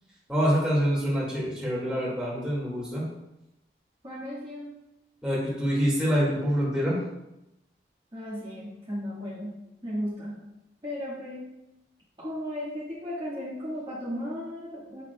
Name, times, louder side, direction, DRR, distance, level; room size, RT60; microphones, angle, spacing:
voice 1, 0.3-3.1 5.2-7.0, equal, 5° right, -7 dB, 2.2 m, -26 dB
voice 2, 4.0-4.8 8.1-9.6 9.8-10.4 10.8-11.5 12.2-15.0, equal, 30° right, -9 dB, 1.6 m, -35 dB
8.9 x 5.8 x 2.4 m, 0.91 s
head